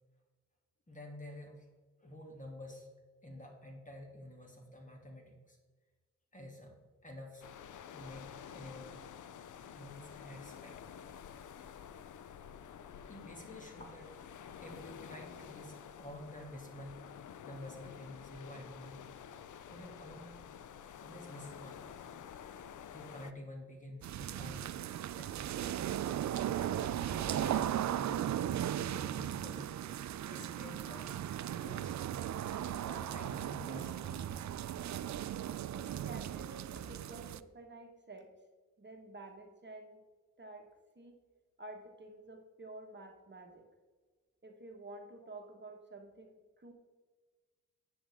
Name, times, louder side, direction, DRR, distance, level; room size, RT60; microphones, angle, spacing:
voice 1, 0.9-1.7 2.0-2.9 3.2-5.6 6.3-6.8 7.0-7.4 7.9-9.0 9.6-10.9 13.1-14.2 14.6-17.0 17.4-19.0 19.7-20.3 21.0-21.9 22.8-24.7 25.1-25.4 26.3-29.7 30.3-31.1 31.5-32.0 32.4-34.6, left 1 dB, 25° left, 1 dB, 2.5 m, -50 dB
sound 1, 7.4-23.3, left 8 dB, 75° left, 0.6 m, -50 dB
sound 2, 24.0-37.4, right 11 dB, 65° right, 0.4 m, -37 dB
voice 2, 35.7-38.3 38.8-40.0 40.4-40.7 40.9-41.2 41.6-43.7 44.4-46.7, right 2 dB, 35° right, 2 dB, 1.4 m, -50 dB
10.0 x 7.6 x 3.6 m, 1.4 s
cardioid pair, 60°, 31 cm